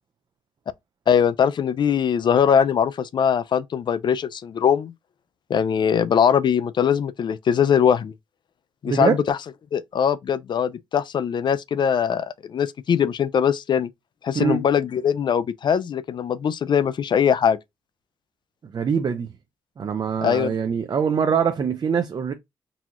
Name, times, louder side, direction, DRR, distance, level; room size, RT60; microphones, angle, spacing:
voice 1, 1.1-4.9 5.5-8.1 8.8-9.4 9.7-13.9 14.2-17.6 20.2-20.5, left 8 dB, 55° left, 0.4 m, -21 dB
voice 2, 8.9-9.2 14.3-14.6 18.6-19.3 19.8-22.3, right 6 dB, 45° right, 0.5 m, -23 dB
4.0 x 2.4 x 2.9 m
supercardioid pair, 60°, 10 cm